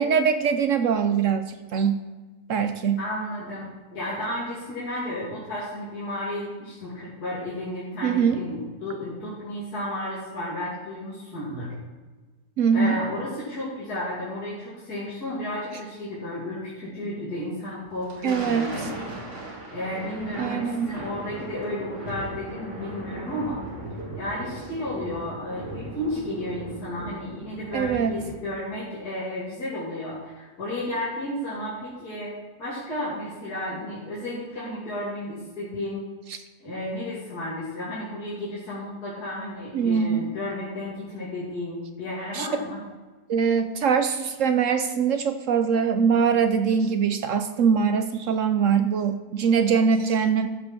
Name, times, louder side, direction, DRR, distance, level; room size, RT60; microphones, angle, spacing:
voice 1, 0.0-2.0 2.5-3.0 8.0-8.4 12.6-13.0 18.2-18.9 20.4-20.9 27.7-28.2 39.7-40.3 42.3-42.5 43.3-50.5, right 6 dB, 65° right, 9 dB, 0.9 m, -22 dB
voice 2, 3.0-3.6 3.9-11.7 12.7-18.9 19.7-23.6 24.1-32.3 32.6-36.0 36.6-42.8, left 1 dB, 70° left, -9 dB, 3.3 m, -33 dB
Thunder, 17.9-28.6, right 1 dB, 80° right, 2.9 m, -38 dB
13.5 x 5.3 x 6.1 m, 1.3 s
omnidirectional pair, 1.7 m